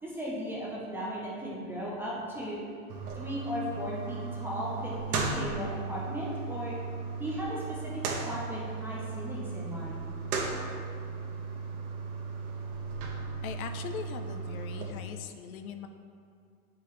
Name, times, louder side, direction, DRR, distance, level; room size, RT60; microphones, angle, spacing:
voice 1, 0.0-2.6 3.1-6.8 7.2-10.0, equal, 5° right, -6 dB, 0.5 m, -36 dB
sound 1, 2.9-14.9, right 4 dB, 75° right, 1.2 m, -36 dB
voice 2, 13.4-15.9, left 7 dB, 70° left, 7 dB, 0.7 m, -40 dB
8.2 x 4.7 x 3.1 m, 2.4 s
supercardioid pair, 145°, 43 cm